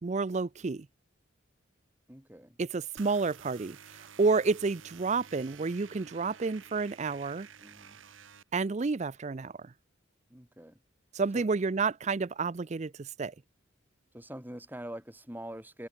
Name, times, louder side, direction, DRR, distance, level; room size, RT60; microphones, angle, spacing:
voice 1, 0.0-0.9 2.6-7.5 8.5-9.7 11.1-13.3, right 4 dB, 35° right, 0.4 m, -30 dB
voice 2, 2.1-2.6 7.6-8.0 10.3-10.8 11.3-11.8 14.1-15.9, right 1 dB, 10° right, 2.5 m, -44 dB
sound 1, 3.0-8.4, right 7 dB, 80° right, 1.6 m, -51 dB
head